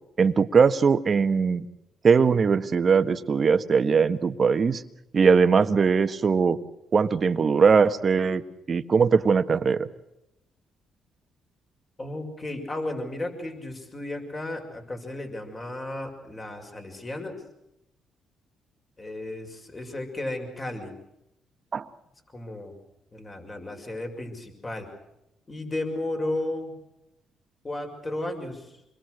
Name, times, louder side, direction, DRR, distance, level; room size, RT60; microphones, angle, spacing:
voice 1, 0.2-1.7 2.0-4.8 5.1-6.6 6.9-8.4 8.7-9.9 21.7-21.9, right 5 dB, 40° right, 10 dB, 1.6 m, -20 dB
voice 2, 12.0-17.4 19.0-20.9 22.3-22.7 23.1-24.9 25.5-26.7 27.6-28.7, left 1 dB, 25° left, 4 dB, 6.4 m, -34 dB
27.5 x 22.0 x 6.5 m, 0.86 s
cardioid pair, 90°, 0 cm